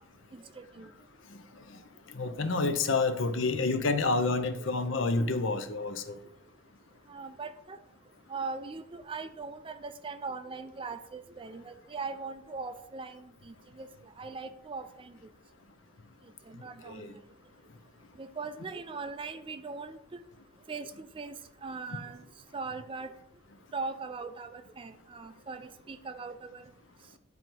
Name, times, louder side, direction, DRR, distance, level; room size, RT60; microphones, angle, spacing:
voice 1, 0.3-0.9 4.7-4.8 7.1-7.8 8.3-15.1 16.5-17.2 18.2-20.0 20.7-22.2 22.5-23.1 23.7-26.6, right 4 dB, 25° right, 11 dB, 0.3 m, -40 dB
voice 2, 2.1-6.2 16.9-17.1, left 3 dB, 60° left, 9 dB, 0.7 m, -29 dB
9.4 x 3.9 x 4.5 m, 0.75 s
head